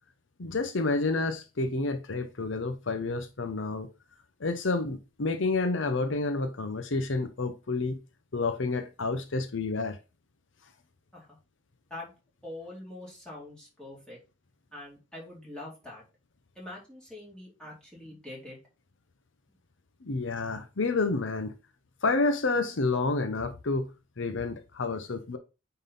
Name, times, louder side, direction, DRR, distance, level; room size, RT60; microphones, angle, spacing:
voice 1, 0.4-3.9 4.4-8.0 8.3-10.0 20.0-21.5 22.0-23.9 24.2-25.4, left 3 dB, 70° left, 0.8 m, -29 dB
voice 2, 12.4-14.2 14.7-16.0 16.6-18.6, left 1 dB, 5° left, 4.1 m, -44 dB
9.1 x 4.0 x 4.0 m
head